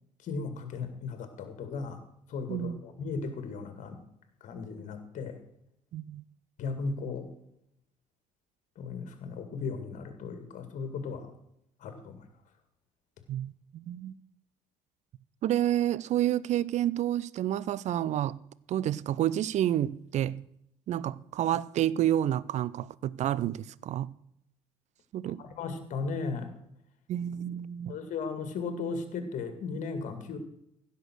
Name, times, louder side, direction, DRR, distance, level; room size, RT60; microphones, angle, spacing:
voice 1, 0.2-2.0 2.3-4.0 4.4-5.4 6.6-7.3 8.8-11.3 11.8-12.3 25.4-26.5 27.9-30.4, left 4 dB, 50° left, 2.2 m, -36 dB
voice 2, 5.9-6.2 13.3-14.2 15.4-18.4 18.7-20.5 20.9-24.1 25.1-25.4 27.1-28.0, right 12 dB, 45° right, 0.6 m, -29 dB
16.0 x 6.7 x 6.3 m
figure-of-eight pair, 55°, 16 cm